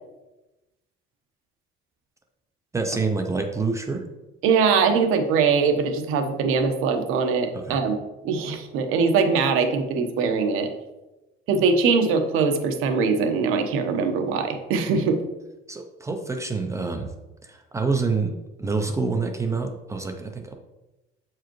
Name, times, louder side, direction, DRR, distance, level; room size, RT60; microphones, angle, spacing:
voice 1, 2.7-4.1 7.5-7.8 15.7-17.1 17.4-18.3 18.6-20.5, right 4 dB, 15° right, 4 dB, 0.4 m, -27 dB
voice 2, 4.4-8.0 8.2-10.7 11.5-15.2, right 5 dB, 80° right, 5 dB, 1.0 m, -22 dB
7.9 x 4.8 x 3.0 m, 1.0 s
cardioid pair, 175°, 21 cm